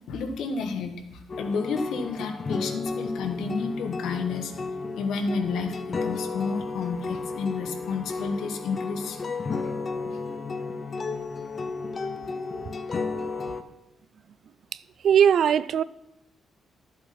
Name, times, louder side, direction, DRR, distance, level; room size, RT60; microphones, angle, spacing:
voice 1, 0.1-4.5 4.9-9.2, left 4 dB, 75° left, 1.3 m, -31 dB
sound 1, 1.3-13.6, left 4 dB, 30° left, 0.6 m, -33 dB
voice 2, 13.1-13.6 15.0-15.8, right 8 dB, 50° right, 0.3 m, -21 dB
12.0 x 7.9 x 4.3 m
cardioid pair, 160°, 0 cm